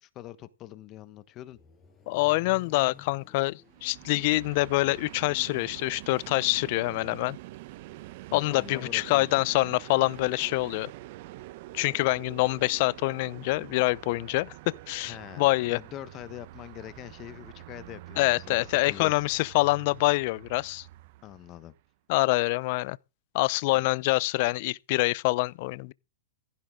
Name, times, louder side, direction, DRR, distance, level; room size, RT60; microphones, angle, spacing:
voice 1, 0.0-1.6 8.3-9.3 15.0-19.2 21.2-21.7 23.7-23.8, left 13 dB, 35° left, 1.2 m, -44 dB
Accelerating revving vroom, 0.9-6.9, left 6 dB, 15° left, 5.8 m, -56 dB
voice 2, 2.1-7.4 8.3-10.9 11.7-14.5 14.9-15.8 18.2-20.8 22.1-23.0 23.3-25.9, left 22 dB, 50° left, 0.7 m, -26 dB
Train, 3.6-21.8, right 18 dB, 55° right, 0.9 m, -46 dB
15.5 x 15.0 x 3.8 m
hypercardioid pair, 120°, 0 cm